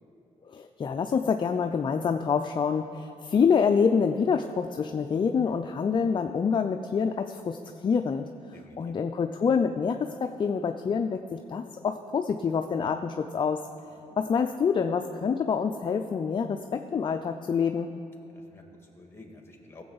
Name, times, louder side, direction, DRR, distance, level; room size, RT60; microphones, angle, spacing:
voice 1, 0.5-13.7 14.2-17.9, left 6 dB, 35° left, 7 dB, 0.4 m, -27 dB
voice 2, 8.5-8.9 13.8-14.2 18.3-19.8, left 2 dB, 15° left, 2 dB, 1.9 m, -51 dB
16.5 x 7.6 x 4.0 m, 2.7 s
cardioid pair, 95°, 14 cm